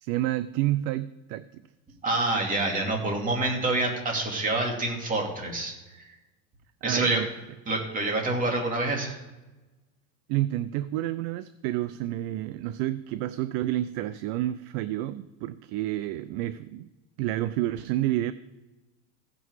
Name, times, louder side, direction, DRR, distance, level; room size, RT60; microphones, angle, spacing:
voice 1, 0.0-1.6 6.8-7.3 10.3-16.9 17.2-18.3, right 14 dB, 45° right, 14 dB, 0.4 m, -29 dB
voice 2, 2.0-6.1 6.8-7.2 7.7-9.2, right 2 dB, 20° right, 0 dB, 2.7 m, -27 dB
15.5 x 6.1 x 4.7 m, 1.1 s
supercardioid pair, 125°, 40 cm